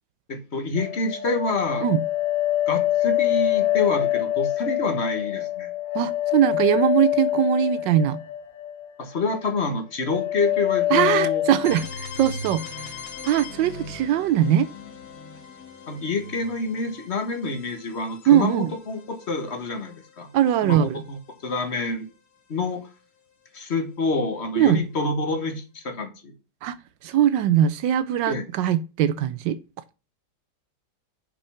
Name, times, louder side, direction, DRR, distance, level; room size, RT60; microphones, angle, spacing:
voice 1, 0.3-1.9 2.7-5.7 9.0-11.4 15.9-20.3 20.6-21.2 21.4-22.0 22.5-22.9 23.5-26.1 28.3-28.4, left 3 dB, 35° left, 1.6 m, -27 dB
sound 1, 0.8-8.9 9.2-9.8 10.1-11.8, left 14 dB, 70° left, 1.8 m, -25 dB
voice 2, 5.9-8.2 10.9-12.9 13.2-14.7 18.3-18.7 20.3-21.0 24.6-24.8 26.6-26.8 27.0-29.6, right 10 dB, 80° right, 1.2 m, -21 dB
sound 2, 11.6-21.4, left 4 dB, 55° left, 2.0 m, -40 dB
7.1 x 5.5 x 5.7 m
omnidirectional pair, 2.0 m